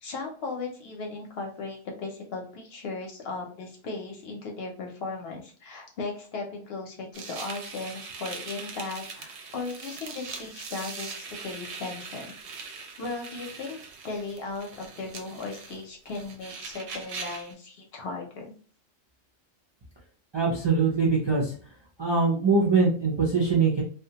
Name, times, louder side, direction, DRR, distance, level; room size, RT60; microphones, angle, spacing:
voice 1, 0.0-12.4 13.0-13.8 14.0-18.5, left 3 dB, 65° left, 1 dB, 0.7 m, -37 dB
sound 1, 7.1-17.5, right 5 dB, 70° right, 0.8 m, -41 dB
voice 2, 20.3-21.5 22.0-23.8, right 4 dB, 40° right, -3 dB, 0.4 m, -23 dB
2.3 x 2.1 x 2.7 m, 0.42 s
omnidirectional pair, 1.3 m